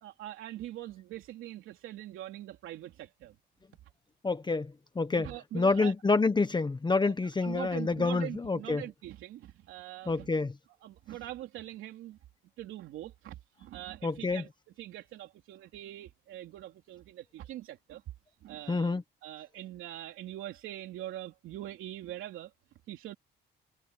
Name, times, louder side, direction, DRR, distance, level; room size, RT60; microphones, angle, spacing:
voice 1, 0.0-3.3 5.1-5.9 7.0-7.1 7.4-10.5 10.8-12.2 12.6-14.5 14.8-18.0 18.4-22.5 22.9-23.1, right 14 dB, 90° right, 3.4 m, -43 dB
voice 2, 4.2-5.3 5.5-8.8 10.1-10.5 14.0-14.4 18.7-19.0, left 3 dB, 20° left, 1.3 m, -28 dB
cardioid pair, 90°, 20 cm